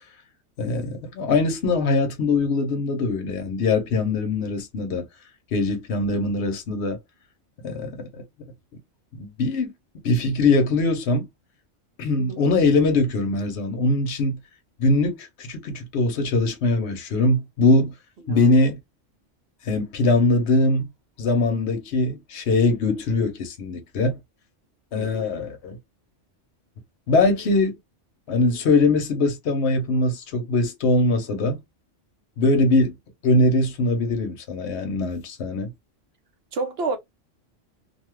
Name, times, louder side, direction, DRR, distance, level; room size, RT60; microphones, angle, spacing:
voice 1, 0.6-5.0 5.5-7.0 7.6-8.2 9.1-9.7 10.0-11.3 12.0-14.4 14.8-17.9 18.3-18.8 19.7-20.9 21.2-24.2 24.9-25.8 27.1-27.8 28.3-31.6 32.4-32.9 33.2-35.7, left 2 dB, 60° left, 1.1 m, -22 dB
voice 2, 25.0-25.3 36.5-37.0, right 3 dB, 60° right, 0.8 m, -29 dB
2.7 x 2.3 x 3.1 m
omnidirectional pair, 1.3 m